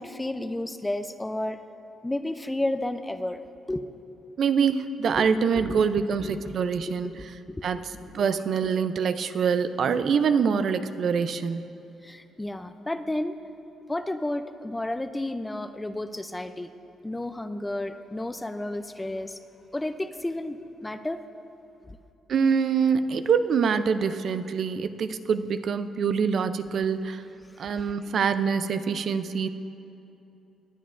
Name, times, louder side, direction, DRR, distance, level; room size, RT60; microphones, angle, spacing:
voice 1, 0.0-1.6 2.0-3.4 3.7-4.0 5.2-5.3 5.6-5.8 6.2-8.2 8.6-8.7 12.0-13.4 13.9-16.7 17.0-19.4 19.7-21.2 27.6-27.9, left 1 dB, 15° left, 10 dB, 0.4 m, -32 dB
voice 2, 4.4-7.1 7.6-7.8 8.1-11.7 22.3-27.2 27.6-29.5, right 6 dB, 60° right, 11 dB, 0.4 m, -25 dB
19.0 x 8.9 x 2.5 m, 2.8 s
cardioid pair, 90°, 0 cm